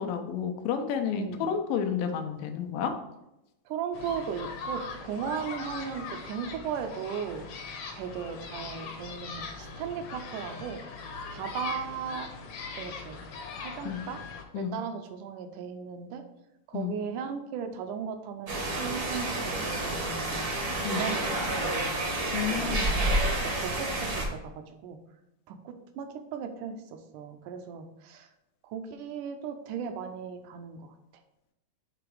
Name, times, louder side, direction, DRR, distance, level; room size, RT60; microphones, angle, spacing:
voice 1, 0.0-2.9 13.9-14.0 14.5-14.7 16.7-16.9 20.8-21.1 22.3-22.9, left 8 dB, 85° left, 5 dB, 2.5 m, -30 dB
voice 2, 1.1-1.4 3.7-7.4 7.9-10.8 11.3-12.3 12.8-13.3 13.6-14.2 14.6-16.2 16.7-19.3 19.6-20.5 20.8-21.9 22.5-23.2 23.6-24.5 24.8-25.0 25.5-28.3 28.6-30.9, right 7 dB, 80° right, 7 dB, 1.9 m, -37 dB
sound 1, 3.9-14.4, left 4 dB, 65° left, 1.8 m, -40 dB
sound 2, 18.5-24.3, right 1 dB, 65° right, 0.9 m, -29 dB
6.9 x 3.8 x 4.7 m, 0.89 s
omnidirectional pair, 3.9 m